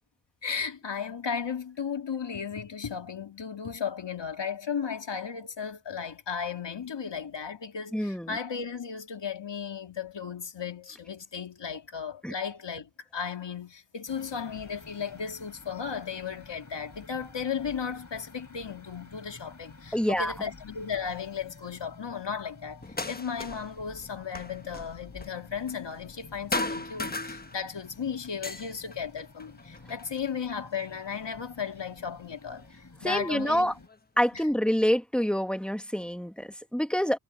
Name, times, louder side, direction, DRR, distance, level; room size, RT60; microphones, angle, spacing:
voice 1, 0.4-33.7 34.3-34.5, left 6 dB, 70° left, 2.6 m, -35 dB
voice 2, 7.9-8.4 12.2-12.3 19.9-20.3 33.0-33.7 34.2-37.2, equal, ahead, 1.6 m, -27 dB
sound 1, 14.1-33.9, left 3 dB, 40° left, 3.6 m, -51 dB
sound 2, 22.8-23.8 24.0-26.2 26.5-27.9 28.2-30.1 30.8-31.7 32.6-32.7 33.3-34.4, left 2 dB, 20° left, 1.3 m, -37 dB
wide cardioid pair, 65°, 44 cm